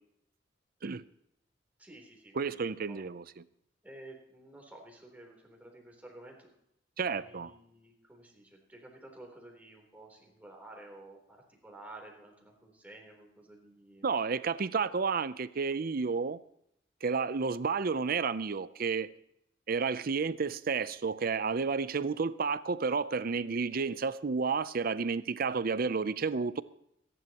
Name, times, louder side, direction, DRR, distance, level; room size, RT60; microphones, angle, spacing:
voice 1, 1.8-3.1 3.8-6.5 7.0-14.1, right 1 dB, 10° right, 3.4 m, -52 dB
voice 2, 2.4-3.2 7.0-7.5 14.0-16.4 17.0-19.1 19.7-26.6, right 5 dB, 50° right, 0.5 m, -31 dB
26.5 x 11.0 x 3.0 m
head